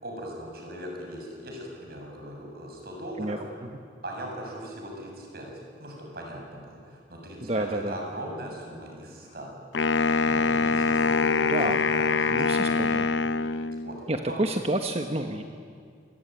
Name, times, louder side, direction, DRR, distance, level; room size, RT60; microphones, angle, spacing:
voice 1, 0.0-3.4 4.0-5.5 5.8-9.5 10.1-11.8 12.2-12.9 13.8-14.4, right 1 dB, 60° right, 0 dB, 7.5 m, -39 dB
voice 2, 7.4-7.9 11.5-11.8 12.3-13.1 14.1-15.4, right 1 dB, 35° right, 5 dB, 1.3 m, -29 dB
Wind instrument woodwind instrument, 9.7-14.0, left 4 dB, 90° left, 0.7 m, -24 dB
27.5 x 22.5 x 9.2 m, 2.1 s
head